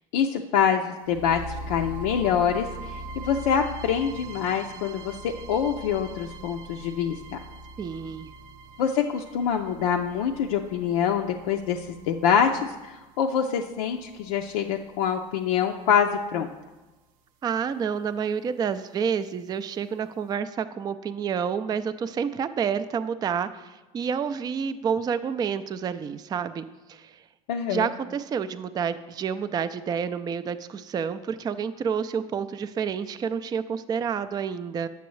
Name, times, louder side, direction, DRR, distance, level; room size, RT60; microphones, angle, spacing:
voice 1, 0.1-1.4 1.7-7.4 8.8-16.5 27.5-27.9, left 7 dB, 80° left, 2 dB, 0.5 m, -25 dB
sound 1, 1.0-15.0, right 2 dB, 75° right, 0.6 m, -42 dB
voice 2, 7.8-8.3 17.4-27.2 27.7-34.9, right 7 dB, 20° right, 11 dB, 0.3 m, -29 dB
8.3 x 6.9 x 3.1 m, 1.1 s
hypercardioid pair, 90°, 18 cm